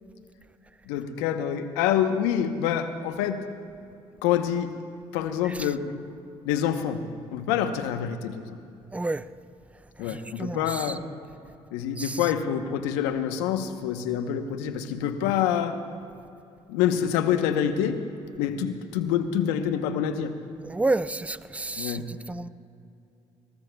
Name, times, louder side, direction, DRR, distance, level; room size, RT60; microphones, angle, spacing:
voice 1, 0.9-3.4 4.2-4.7 5.1-5.9 6.4-7.0 7.3-8.4 10.0-11.0 11.7-15.8 16.7-18.0 18.4-20.3 21.8-22.1, left 9 dB, 85° left, 9 dB, 0.9 m, -26 dB
voice 2, 8.9-9.2 10.1-10.9 12.0-12.2 20.7-22.5, right 2 dB, 10° right, 15 dB, 0.5 m, -30 dB
27.0 x 19.5 x 2.3 m, 2.6 s
hypercardioid pair, 60°, 13 cm